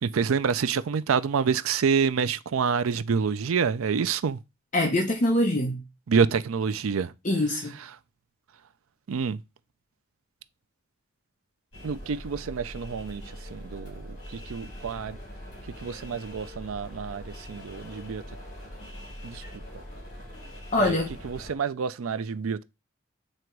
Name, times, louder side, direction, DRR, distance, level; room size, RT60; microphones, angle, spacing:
voice 1, 0.0-4.4 6.1-7.1 9.1-9.4 11.8-13.2 13.5-15.2 15.8-18.2 19.2-19.4 20.8-21.0 21.2-22.6, right 6 dB, 85° right, 0.4 m, -27 dB
voice 2, 4.7-5.8 7.2-7.7 20.7-21.1, left 1 dB, 35° left, 0.9 m, -24 dB
sound 1, 11.7-21.5, equal, 60° left, 3.9 m, -42 dB
7.7 x 2.9 x 4.6 m
head